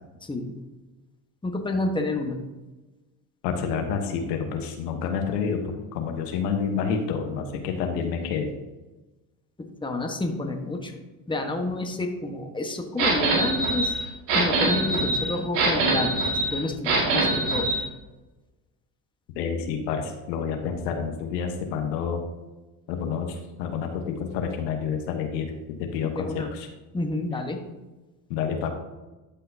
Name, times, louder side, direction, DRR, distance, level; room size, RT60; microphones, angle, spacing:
voice 1, 0.2-0.5 1.4-2.4 9.6-11.0 11.3-14.0 14.3-17.7 26.0-26.5 26.9-27.6, left 2 dB, 10° left, 3 dB, 1.2 m, -29 dB
voice 2, 3.4-8.5 19.3-22.2 22.9-25.5 25.8-26.7 28.3-28.7, left 6 dB, 80° left, 4 dB, 1.2 m, -29 dB
sound 1, 13.0-17.8, right 2 dB, 80° right, 2.2 m, -24 dB
12.0 x 5.6 x 2.8 m, 1.1 s
hypercardioid pair, 75°, 48 cm